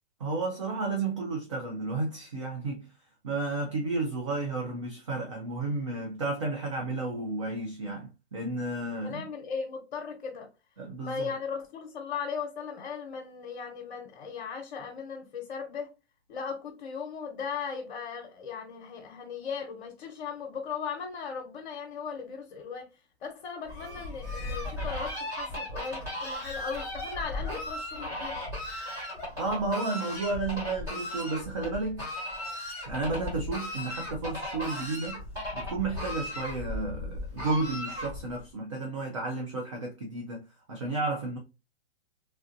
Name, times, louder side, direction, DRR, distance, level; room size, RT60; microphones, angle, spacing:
voice 1, 0.2-2.9 3.2-9.3 10.8-11.4 29.3-32.1 32.8-35.2 35.5-40.4 40.7-41.4, right 3 dB, 30° right, 0.4 m, -32 dB
voice 2, 9.0-10.5 11.0-15.9 16.3-22.9 23.2-28.4, left 6 dB, 50° left, 0.9 m, -37 dB
Fowl, 23.6-38.4, left 1 dB, 10° right, 1.0 m, -36 dB
3.2 x 2.5 x 2.5 m
hypercardioid pair, 170°, 33 cm